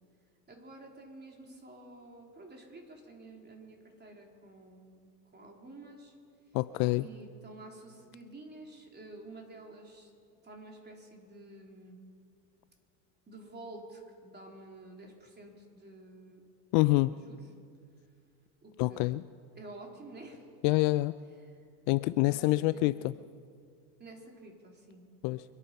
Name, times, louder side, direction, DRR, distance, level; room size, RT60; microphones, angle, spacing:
voice 1, 0.5-6.1 7.0-10.1 10.4-12.0 13.3-16.5 17.1-17.4 18.6-19.1 19.6-20.4 21.3-21.6 22.2-22.9 24.0-25.0, right 2 dB, 20° right, 1 dB, 3.5 m, -50 dB
voice 2, 6.5-7.1 16.7-17.1 18.8-19.2 20.6-21.1 21.9-23.1 25.2-25.4, left 20 dB, 55° left, 16 dB, 0.5 m, -26 dB
25.0 x 9.2 x 5.9 m, 2.2 s
hypercardioid pair, 95°, 48 cm